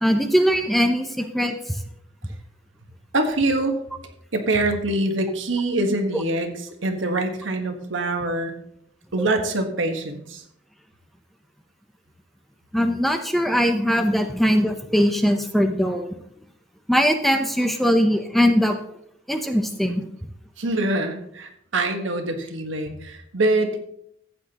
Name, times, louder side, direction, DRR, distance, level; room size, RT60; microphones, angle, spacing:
voice 1, 0.0-1.8 9.2-9.3 12.7-16.1 16.9-18.7 19.3-20.0, equal, ahead, 5 dB, 0.7 m, -21 dB
voice 2, 3.1-3.8 4.3-6.5 6.8-8.5 9.1-10.4 20.6-23.8, right 2 dB, 90° right, 5 dB, 1.4 m, -24 dB
14.5 x 8.5 x 2.9 m, 0.72 s
head